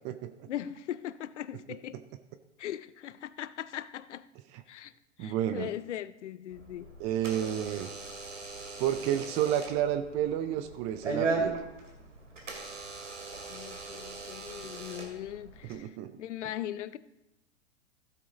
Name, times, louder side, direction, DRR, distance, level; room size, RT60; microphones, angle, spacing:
voice 1, 0.5-2.0 2.6-4.3 4.7-4.9 5.2-6.9 13.5-15.9 16.2-17.0, left 11 dB, 70° left, 0.6 m, -39 dB
voice 2, 5.2-5.7 7.0-7.9 8.8-11.6 15.6-16.1, right 11 dB, 20° right, 0.3 m, -31 dB
Door / Alarm, 6.5-15.7, right 3 dB, 85° right, 2.4 m, -38 dB
15.0 x 6.1 x 3.9 m
hypercardioid pair, 105°, 37 cm